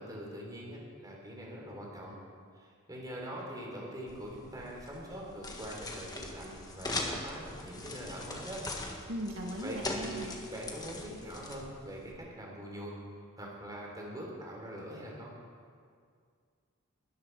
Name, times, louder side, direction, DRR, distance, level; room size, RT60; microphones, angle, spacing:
voice 1, 0.0-2.2 2.6-8.6 9.6-12.9 13.4-15.3, equal, 15° right, -2 dB, 3.7 m, -43 dB
sound 1, 4.1-12.1, left 2 dB, 20° left, 1.6 m, -41 dB
voice 2, 9.1-10.4, equal, 65° right, -1 dB, 1.8 m, -38 dB
21.0 x 13.5 x 4.8 m, 2.1 s
head